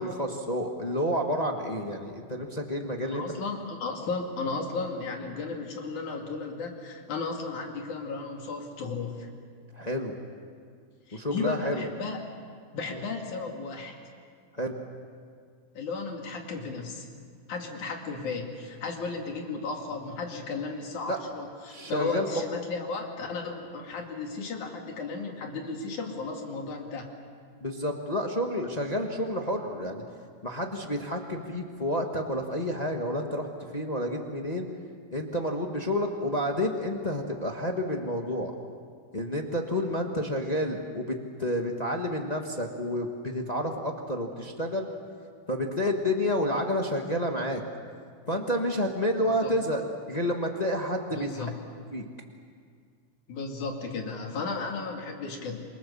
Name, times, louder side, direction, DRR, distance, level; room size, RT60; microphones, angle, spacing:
voice 1, 0.0-3.2 9.7-10.1 11.1-11.8 14.6-14.7 21.1-21.2 21.7-22.3 27.6-30.0 30.4-33.5 33.7-34.7 35.1-38.5 39.1-44.9 45.5-47.6 48.3-51.3 51.9-52.0, left 1 dB, 30° left, 2 dB, 0.7 m, -29 dB
voice 2, 3.0-9.3 11.1-12.2 12.7-14.0 15.8-17.1 17.5-27.1 49.2-49.5 51.1-51.6 53.3-55.7, left 4 dB, 80° left, 2 dB, 4.0 m, -34 dB
27.0 x 23.5 x 7.1 m, 2.1 s
omnidirectional pair, 3.4 m